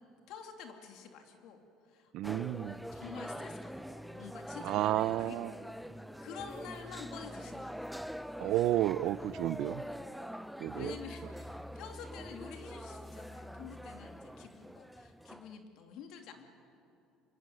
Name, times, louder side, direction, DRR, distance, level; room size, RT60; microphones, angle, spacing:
voice 1, 0.3-1.6 1.9-5.4 6.2-8.0 10.7-16.5, left 7 dB, 65° left, 4 dB, 2.7 m, -49 dB
voice 2, 2.1-2.8 4.6-5.6 8.4-9.8 10.6-10.9, right 14 dB, 65° right, 19 dB, 0.6 m, -31 dB
sound 1, 2.2-15.6, equal, ahead, 0.6 m, -44 dB
24.5 x 23.5 x 9.4 m, 2.7 s
cardioid pair, 135°, 0 cm